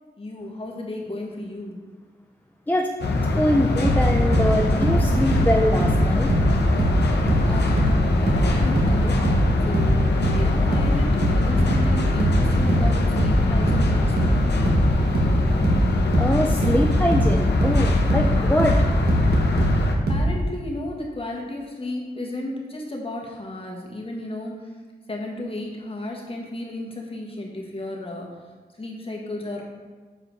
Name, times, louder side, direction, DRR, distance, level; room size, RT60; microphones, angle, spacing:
voice 1, 0.2-1.8 7.5-9.9 10.2-14.4 20.1-24.5 25.1-28.3 28.8-29.6, left 1 dB, 35° left, -2 dB, 1.4 m, -33 dB
sound 1, 3.0-20.0, left 2 dB, 85° left, 0.8 m, -22 dB
voice 2, 3.3-6.3 16.2-18.8, left 1 dB, 10° left, 1 dB, 0.4 m, -23 dB
sound 2, 3.8-7.0 7.3-20.3, right 1 dB, 75° right, 1.4 m, -22 dB
6.4 x 4.8 x 4.6 m, 1.4 s
wide cardioid pair, 85°, 17 cm